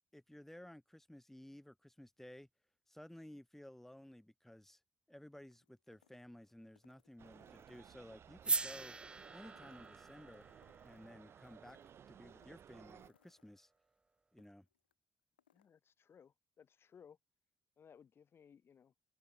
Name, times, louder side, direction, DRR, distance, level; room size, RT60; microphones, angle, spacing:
voice 1, 0.1-2.5 2.9-4.8 5.1-9.0 9.3-10.5 10.8-11.8 12.1-13.7 14.3-14.7, left 1 dB, 5° left, 3.4 m, -55 dB
sound 1, 5.5-8.1 8.4-11.1 11.4-14.9 15.2-15.7, left 10 dB, 90° left, 2.1 m, -75 dB
sound 2, 7.2-13.1, right 8 dB, 55° right, 1.2 m, -59 dB
sound 3, 8.4-12.6, right 3 dB, 20° right, 0.4 m, -42 dB
voice 2, 15.5-17.2 17.8-18.9, left 7 dB, 50° left, 5.1 m, -62 dB
hypercardioid pair, 45°, 5 cm